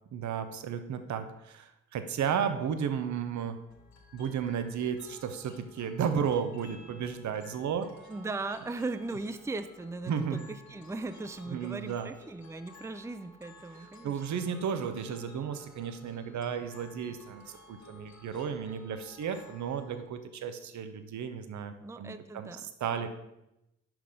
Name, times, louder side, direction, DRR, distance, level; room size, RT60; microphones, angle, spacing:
voice 1, 0.1-3.6 4.1-7.9 10.1-10.5 11.5-12.1 13.8-23.1, right 7 dB, 65° right, 9 dB, 0.8 m, -33 dB
sound 1, 3.7-20.1, left 2 dB, 65° left, 1.5 m, -55 dB
voice 2, 8.1-14.2 21.8-22.7, right 3 dB, 10° right, 10 dB, 0.5 m, -38 dB
6.1 x 5.4 x 4.9 m, 0.87 s
supercardioid pair, 55°, 30 cm